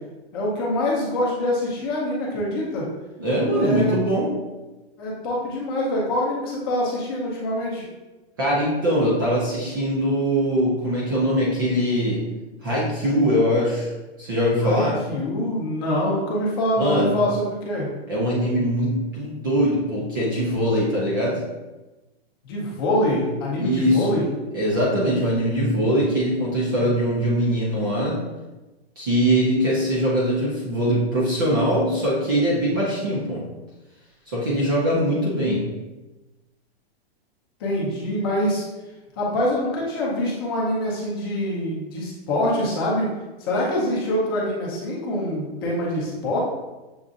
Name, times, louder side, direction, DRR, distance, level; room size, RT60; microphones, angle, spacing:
voice 1, 0.3-2.9 3.5-3.9 5.0-7.8 14.6-17.9 22.4-24.3 37.6-38.6 39.2-43.1 43.4-46.4, left 1 dB, 20° left, -5 dB, 0.7 m, -25 dB
voice 2, 3.2-4.3 8.4-12.2 12.6-13.9 14.2-15.0 16.8-17.2 18.1-21.4 23.6-24.1 24.5-28.2 29.0-33.4 34.3-35.6, equal, 20° right, -6 dB, 0.5 m, -22 dB
6.8 x 2.5 x 2.5 m, 1.1 s
hypercardioid pair, 175°, 32 cm